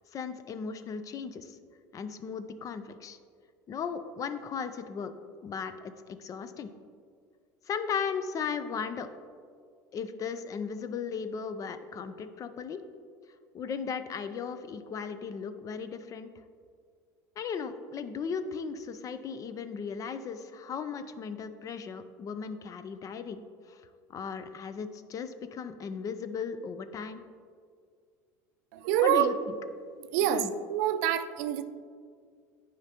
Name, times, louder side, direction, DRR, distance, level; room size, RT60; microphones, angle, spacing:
voice 1, 0.1-1.6 1.9-3.2 3.7-5.1 5.4-6.7 7.7-9.1 9.9-12.8 13.5-16.3 17.4-23.8 24.1-27.2 29.0-29.3 30.3-30.5, left 6 dB, 40° left, 11 dB, 0.5 m, -36 dB
voice 2, 28.7-29.3 30.1-31.6, right 10 dB, 75° right, 10 dB, 0.4 m, -26 dB
9.5 x 5.0 x 2.9 m, 2.1 s
hypercardioid pair, 85°, 9 cm